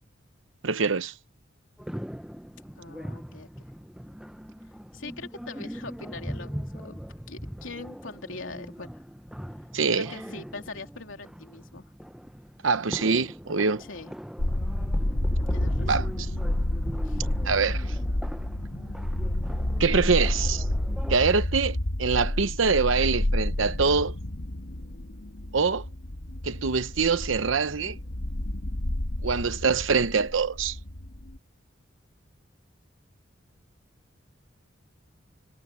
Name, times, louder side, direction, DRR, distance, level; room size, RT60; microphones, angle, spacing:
voice 1, 0.6-1.1 9.7-10.1 12.6-13.8 15.9-16.1 17.4-17.8 19.8-20.6 21.1-24.2 25.5-25.8 26.4-28.0 29.2-30.8, right 5 dB, 80° right, 0.9 m, -24 dB
sound 1, 1.8-21.2, equal, 5° right, 0.8 m, -40 dB
voice 2, 2.8-3.5 4.9-7.0 7.3-9.0 9.9-11.8 13.8-14.1 15.5-16.0 17.0-17.2 21.2-21.3, left 3 dB, 85° left, 3.0 m, -42 dB
sound 2, 14.4-31.4, left 1 dB, 65° left, 1.4 m, -30 dB
head